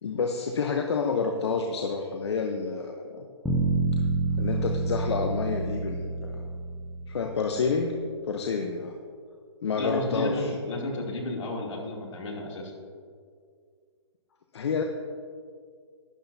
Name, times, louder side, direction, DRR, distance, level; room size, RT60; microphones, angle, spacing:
voice 1, 0.0-3.3 4.4-6.4 7.1-7.9 8.2-9.0 9.6-10.5 14.5-14.8, left 5 dB, 65° left, 3 dB, 0.9 m, -29 dB
sound 1, 3.5-7.6, right 3 dB, ahead, 0.4 m, -28 dB
voice 2, 9.8-12.7, left 2 dB, 80° left, -1 dB, 2.8 m, -32 dB
12.0 x 11.0 x 2.7 m, 2.1 s
hypercardioid pair, 160°, 15 cm